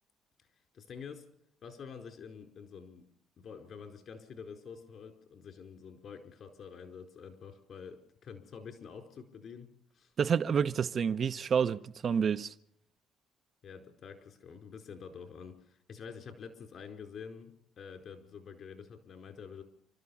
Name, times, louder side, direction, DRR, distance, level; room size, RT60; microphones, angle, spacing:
voice 1, 0.7-1.2 1.6-3.0 3.4-9.7 9.9-10.1 13.6-19.6, left 6 dB, 60° left, 4.6 m, -47 dB
voice 2, 10.2-12.5, right 7 dB, 50° right, 0.8 m, -29 dB
29.5 x 13.0 x 7.2 m
supercardioid pair, 60°, 0 cm